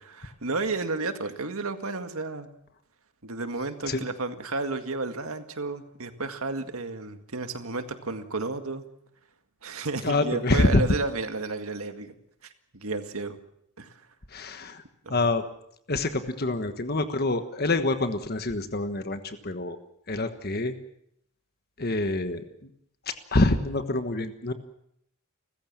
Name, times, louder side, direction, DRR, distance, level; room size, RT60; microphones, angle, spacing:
voice 1, 0.2-2.5 3.2-8.9 9.6-12.1 12.4-13.4 13.8-13.9 15.1-15.3, right 3 dB, 85° right, 8 dB, 2.0 m, -32 dB
voice 2, 10.0-10.8 14.3-14.8 15.1-15.4 15.9-19.8 20.1-20.7 21.8-22.7 23.1-24.5, left 2 dB, 45° left, 9 dB, 1.4 m, -26 dB
30.0 x 15.0 x 7.4 m, 0.74 s
head